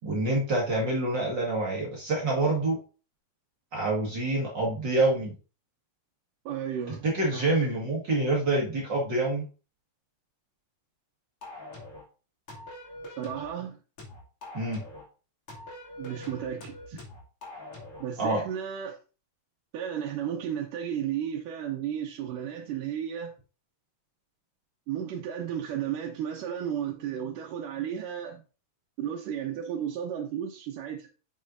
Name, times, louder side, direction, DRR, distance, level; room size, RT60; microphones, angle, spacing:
voice 1, 0.0-2.8 3.7-5.3 6.9-9.4 14.5-14.8 18.2-18.4, right 2 dB, 40° right, 1.7 m, -27 dB
voice 2, 6.5-7.1 7.3-7.7 13.2-13.8 16.0-17.0 18.0-19.0 19.7-23.3 24.9-28.4 29.0-31.1, right 9 dB, 75° right, 2.4 m, -33 dB
sound 1, 11.4-12.1 12.5-13.5 14.0-15.1 15.5-18.1, left 1 dB, 45° left, 3.1 m, -44 dB
8.9 x 6.2 x 2.6 m
omnidirectional pair, 3.9 m